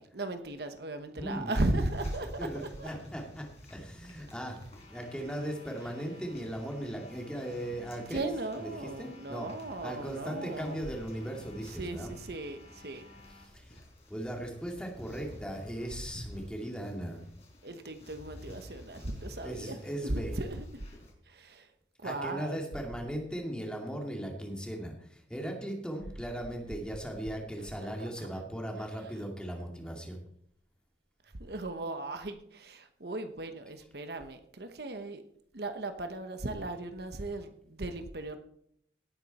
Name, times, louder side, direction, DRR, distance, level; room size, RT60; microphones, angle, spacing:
voice 1, 0.0-2.9 8.0-10.8 11.7-13.1 17.6-19.8 20.0-20.8 21.3-21.7 22.0-22.6 28.0-28.3 31.4-35.2 35.5-38.4, right 2 dB, 60° right, 7 dB, 1.1 m, -37 dB
voice 2, 1.2-1.9 2.2-4.6 4.9-8.3 8.6-9.5 9.8-12.1 13.3-13.8 14.1-17.2 19.4-20.4 22.0-30.2, equal, 5° left, 1 dB, 2.4 m, -38 dB
sound 1, 1.5-21.1, left 1 dB, 35° left, 4.2 m, -52 dB
sound 2, 4.6-13.5, left 2 dB, 70° left, 7.1 m, -56 dB
18.0 x 9.1 x 4.2 m, 0.69 s
head